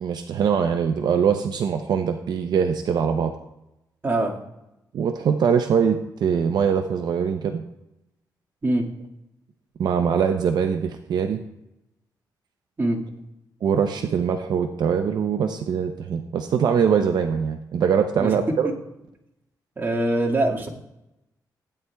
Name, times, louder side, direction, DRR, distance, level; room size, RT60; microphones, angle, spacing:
voice 1, 0.0-3.3 4.9-7.6 9.8-11.4 13.6-18.7, right 7 dB, 70° right, 6 dB, 0.6 m, -22 dB
voice 2, 4.0-4.4 8.6-8.9 12.8-13.0 18.2-18.3 18.6-18.7 19.8-20.7, right 1 dB, 30° right, -2 dB, 1.8 m, -23 dB
16.0 x 9.4 x 2.3 m, 0.89 s
cardioid pair, 100°, 7 cm